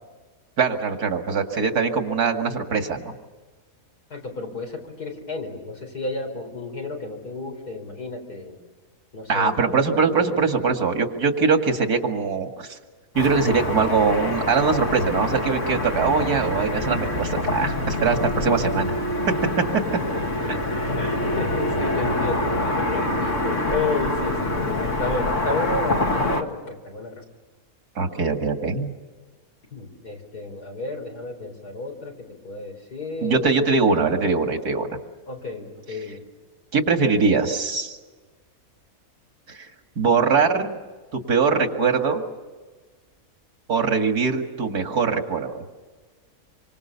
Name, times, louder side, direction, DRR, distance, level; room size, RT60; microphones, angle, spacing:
voice 1, 0.6-3.1 9.3-12.8 13.1-18.9 28.0-28.9 33.2-34.9 36.7-38.0 39.5-39.7 40.0-40.8 41.1-42.2 43.7-45.5, right 5 dB, 80° right, 5 dB, 2.6 m, -22 dB
voice 2, 4.1-8.6 9.1-10.7 21.0-22.5 22.9-27.2 29.7-32.1 32.4-34.0 35.3-36.2, left 3 dB, 80° left, 3 dB, 5.0 m, -32 dB
Car passing by / Traffic noise roadway noise, 13.2-26.4, left 1 dB, 50° left, 2.1 m, -25 dB
27.0 x 25.0 x 6.9 m, 1.3 s
omnidirectional pair, 1.6 m